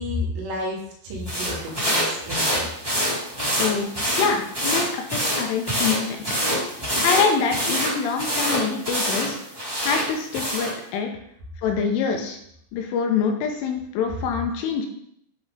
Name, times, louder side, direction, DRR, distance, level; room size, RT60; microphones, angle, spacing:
voice 1, 0.0-2.7 14.4-14.6, left 1 dB, 85° right, -2 dB, 4.3 m, -31 dB
sound 1, 1.2-10.8, equal, 10° right, 1.0 m, -26 dB
voice 2, 3.6-6.2 7.0-9.4 9.8-11.1 11.6-12.4 12.7-14.9, left 6 dB, 80° left, 3 dB, 3.2 m, -25 dB
10.5 x 3.7 x 3.7 m, 0.69 s
omnidirectional pair, 5.9 m